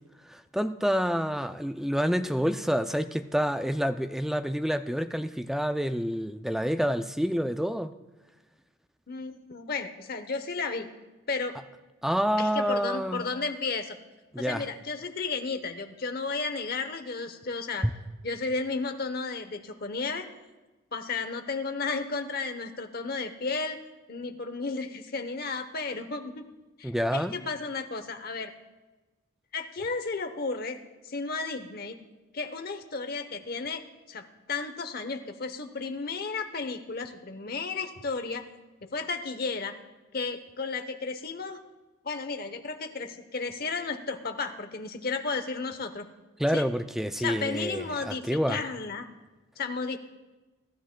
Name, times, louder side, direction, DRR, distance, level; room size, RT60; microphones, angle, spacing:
voice 1, 0.2-7.9 12.0-13.3 14.3-14.7 26.8-27.4 46.4-48.6, equal, ahead, 9 dB, 0.3 m, -28 dB
voice 2, 9.1-10.9 11.3-11.6 12.4-14.0 14.4-17.9 18.2-20.3 20.9-23.8 24.1-26.5 26.8-28.5 29.5-30.8 31.0-32.0 32.3-33.8 34.1-38.5 38.8-39.7 40.1-41.6 42.0-46.1 46.5-46.6 47.2-49.1 49.6-50.0, left 4 dB, 45° left, 8 dB, 0.8 m, -33 dB
23.5 x 12.5 x 2.2 m, 1.2 s
head